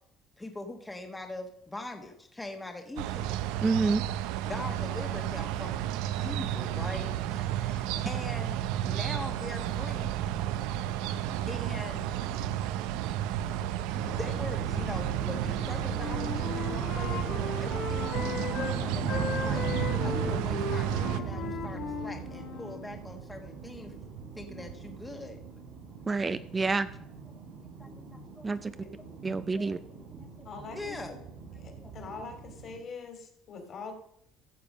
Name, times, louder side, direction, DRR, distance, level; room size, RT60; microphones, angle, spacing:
voice 1, 0.4-3.3 4.5-5.8 6.2-10.1 10.7-13.7 14.0-23.9 24.3-25.4 27.3-27.4 27.8-28.5 29.4-29.7 30.1-30.5 30.7-31.2 31.8-31.9, left 2 dB, 10° left, 4 dB, 1.1 m, -42 dB
sound 1, 3.0-21.2, right 11 dB, 85° right, 0.5 m, -32 dB
voice 2, 3.6-4.0 26.1-26.9 28.4-28.7 29.2-29.8, right 4 dB, 20° right, 13 dB, 0.4 m, -28 dB
sound 2, 13.9-32.8, right 6 dB, 70° right, 3.7 m, -38 dB
Wind instrument woodwind instrument, 15.7-18.7 19.1-22.8, left 5 dB, 70° left, 3.2 m, -37 dB
voice 3, 30.4-31.0 31.6-33.9, left 4 dB, 45° left, 6 dB, 2.4 m, -43 dB
14.0 x 6.8 x 5.2 m, 0.72 s
cardioid pair, 120°, 0 cm